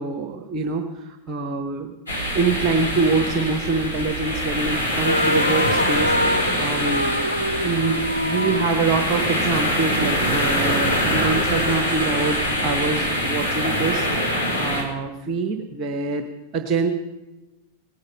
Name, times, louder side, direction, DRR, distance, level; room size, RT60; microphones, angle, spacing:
voice 1, 0.0-1.9 2.3-7.1 7.6-16.2 16.5-16.9, right 4 dB, 35° right, 6 dB, 1.2 m, -25 dB
sound 1, 2.1-14.8, equal, 85° left, 2.7 m, -24 dB
sound 2, 5.0-9.8, equal, 85° right, 0.4 m, -26 dB
18.5 x 9.5 x 5.6 m, 1.0 s
figure-of-eight pair, 90°, 0 cm